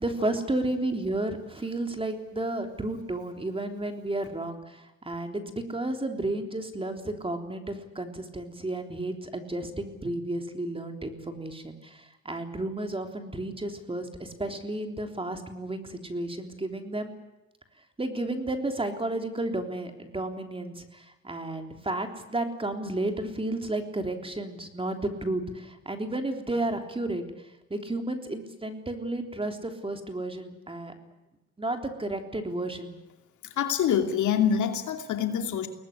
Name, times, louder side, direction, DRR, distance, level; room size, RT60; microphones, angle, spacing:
voice 1, 0.0-17.1 18.0-30.9 31.6-32.9, right 2 dB, 20° right, 5 dB, 3.5 m, -32 dB
voice 2, 33.6-35.7, left 8 dB, 75° left, 5 dB, 2.8 m, -25 dB
22.5 x 19.0 x 9.9 m, 1.0 s
cardioid pair, 90°, 30 cm